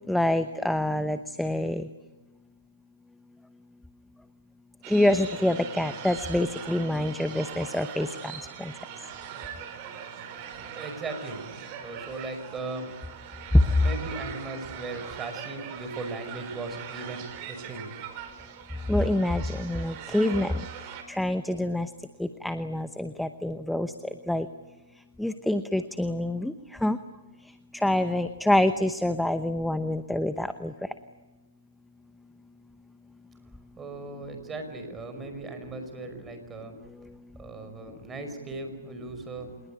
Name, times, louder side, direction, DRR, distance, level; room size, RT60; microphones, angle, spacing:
voice 1, 0.1-1.9 4.9-8.1 8.6-8.7 13.5-13.6 18.9-20.6 21.1-21.9 22.2-23.9 24.3-24.5 25.2-26.5 26.8-27.0 27.7-30.7, left 1 dB, ahead, 10 dB, 0.9 m, -26 dB
sound 1, 4.8-21.0, right 8 dB, 35° right, 4.4 m, -41 dB
voice 2, 10.8-11.5 11.8-12.9 13.8-17.9 30.8-30.9 33.8-36.8 37.4-39.6, right 3 dB, 15° right, 6 dB, 5.3 m, -38 dB
27.0 x 21.0 x 10.0 m, 1.2 s
hypercardioid pair, 140°, 0 cm